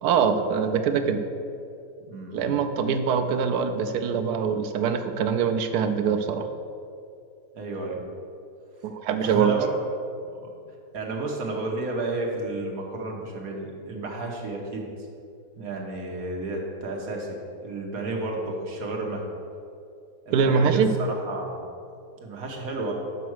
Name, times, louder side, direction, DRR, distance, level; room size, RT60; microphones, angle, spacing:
voice 1, 0.0-1.2 2.3-6.5 8.8-9.6 20.3-20.9, right 6 dB, 85° right, 7 dB, 1.2 m, -23 dB
voice 2, 2.1-2.4 7.5-8.0 9.2-9.7 10.0-10.1 10.4-10.5 10.9-14.9 15.5-19.2 20.3-21.6 22.2-22.9, right 2 dB, 65° right, 0 dB, 1.5 m, -32 dB
5.9 x 5.5 x 6.2 m, 2.5 s
omnidirectional pair, 1.7 m